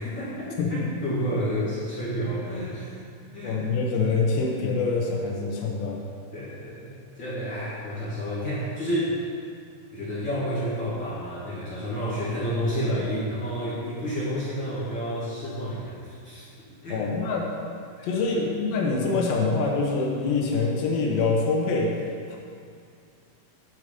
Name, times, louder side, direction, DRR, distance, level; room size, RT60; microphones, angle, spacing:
voice 1, 0.0-3.0 3.3-3.7 6.3-9.1 9.9-16.4 16.8-17.0 18.0-18.1, equal, 35° left, -11 dB, 1.9 m, -30 dB
voice 2, 0.6-0.9 3.4-6.0 16.9-17.5 18.0-22.0 22.3-22.4, left 3 dB, 85° left, -2 dB, 2.0 m, -25 dB
10.5 x 6.6 x 5.2 m, 2.2 s
omnidirectional pair, 5.5 m